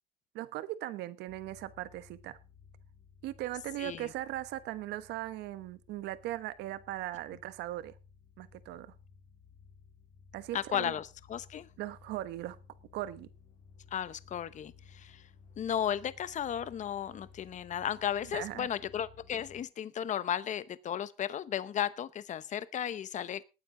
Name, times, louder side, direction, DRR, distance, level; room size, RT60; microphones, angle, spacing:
voice 1, 0.3-2.4 3.2-7.9 8.4-8.9 10.3-10.9 11.8-12.6 12.9-13.3 18.3-18.7, right 15 dB, 85° right, 15 dB, 1.2 m, -39 dB
sound 1, 1.3-19.6, left 6 dB, 65° left, 4.2 m, -58 dB
voice 2, 10.5-11.7 13.9-15.3 15.6-23.4, left 9 dB, 45° left, 16 dB, 0.9 m, -35 dB
19.5 x 9.5 x 3.8 m, 0.30 s
cardioid pair, 110°, 17 cm